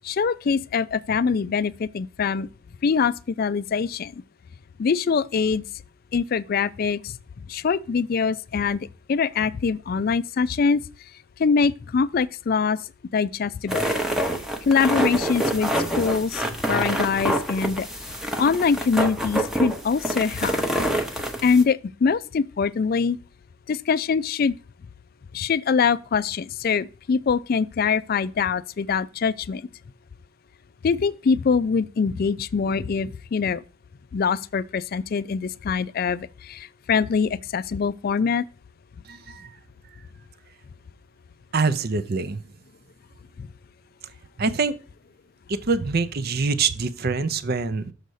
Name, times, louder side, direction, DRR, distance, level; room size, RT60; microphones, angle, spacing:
voice 1, 0.0-2.5 2.8-4.1 4.8-5.6 6.1-7.2 7.5-10.8 11.4-12.8 13.1-13.9 14.7-15.7 16.0-17.9 18.4-20.6 21.4-23.2 23.7-24.5 25.3-29.6 30.8-33.6 34.1-38.4 43.4-43.5, left 5 dB, 45° left, 0.3 m, -23 dB
sound 1, 13.7-21.6, right 1 dB, ahead, 0.7 m, -26 dB
voice 2, 39.0-39.6 41.5-42.4 44.4-44.8 45.5-47.9, right 4 dB, 45° right, 0.6 m, -25 dB
6.5 x 3.9 x 6.4 m
head